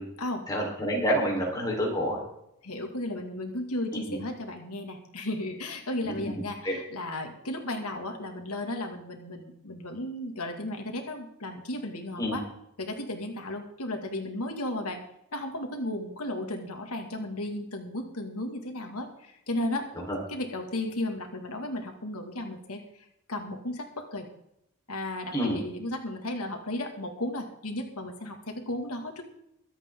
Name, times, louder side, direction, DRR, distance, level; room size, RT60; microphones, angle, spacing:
voice 1, 0.5-2.2 4.1-4.2 6.0-6.3 6.6-6.8 12.2-12.4 20.0-20.2 25.3-25.6, equal, 15° left, -2 dB, 4.0 m, -28 dB
voice 2, 2.6-12.4 12.8-15.0 15.3-19.9 20.3-24.3 24.9-29.2, left 1 dB, 85° left, 3 dB, 2.1 m, -34 dB
24.0 x 8.3 x 3.7 m, 0.80 s
head